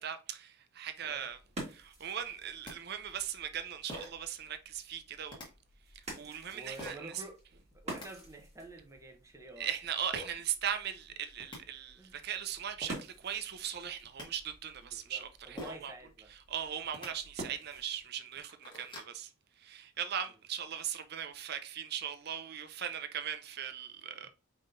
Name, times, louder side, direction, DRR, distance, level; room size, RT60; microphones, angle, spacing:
voice 1, 0.0-1.4 1.7-5.5 6.2-7.1 9.6-15.9 16.5-19.3 19.6-24.3, right 9 dB, 50° right, 0.5 m, -39 dB
sound 1, 1.0-18.1, right 1 dB, 30° right, 1.6 m, -50 dB
sound 2, 2.6-2.7 3.9-4.3 5.3-5.5 6.8-7.0 7.7-8.1 10.1-10.3 11.1-11.2 11.4-11.6 12.5-12.6 12.8-13.0 13.8-14.3 15.6-15.9 16.8-17.1 17.7-17.8 18.2-19.1, left 1 dB, 20° left, 1.3 m, -45 dB
voice 2, 6.5-7.4 7.7-9.7 11.9-12.1 14.9-16.3 24.2-24.3, right 2 dB, 15° right, 0.8 m, -49 dB
4.9 x 3.8 x 2.6 m
head